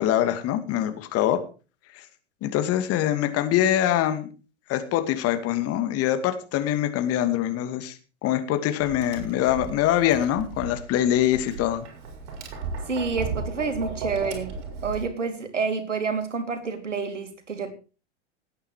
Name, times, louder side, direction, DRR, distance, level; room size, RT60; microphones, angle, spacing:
voice 1, 0.0-1.4 1.9-2.0 2.4-4.3 4.7-8.0 8.2-11.9, left 11 dB, 40° left, 8 dB, 2.5 m, -24 dB
Tap, 8.8-15.0, right 4 dB, 60° right, 5.8 m, -35 dB
voice 2, 12.9-14.5 14.8-17.7, right 4 dB, 85° right, 8 dB, 2.8 m, -28 dB
18.5 x 8.8 x 4.7 m, 0.35 s
figure-of-eight pair, 90°, 36 cm